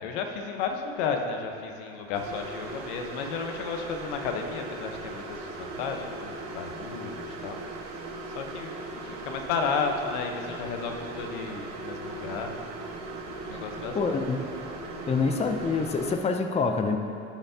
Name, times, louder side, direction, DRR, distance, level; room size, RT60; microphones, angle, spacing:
voice 1, 0.0-8.7 9.0-12.6 13.5-14.2, left 5 dB, 75° left, 4 dB, 1.1 m, -33 dB
sound 1, 2.1-16.2, right 2 dB, 55° right, 1.5 m, -39 dB
voice 2, 13.9-14.5 15.1-17.0, left 4 dB, 20° left, 5 dB, 0.6 m, -26 dB
16.5 x 5.7 x 2.8 m, 2.6 s
supercardioid pair, 85°, 33 cm